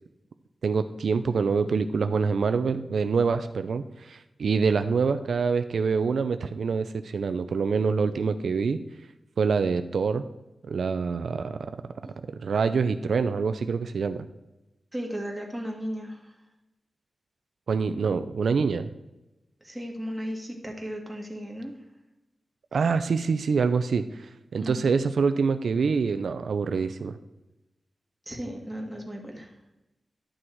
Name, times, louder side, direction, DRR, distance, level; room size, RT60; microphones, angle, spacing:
voice 1, 0.6-8.8 9.4-10.2 10.6-11.7 12.3-14.2 17.7-18.9 22.7-27.2, right 5 dB, 85° right, 10 dB, 0.5 m, -26 dB
voice 2, 14.9-16.3 19.6-21.7 24.6-24.8 28.3-29.5, equal, 5° right, 0 dB, 2.1 m, -35 dB
11.5 x 6.2 x 4.6 m, 0.99 s
wide cardioid pair, 90°, 0 cm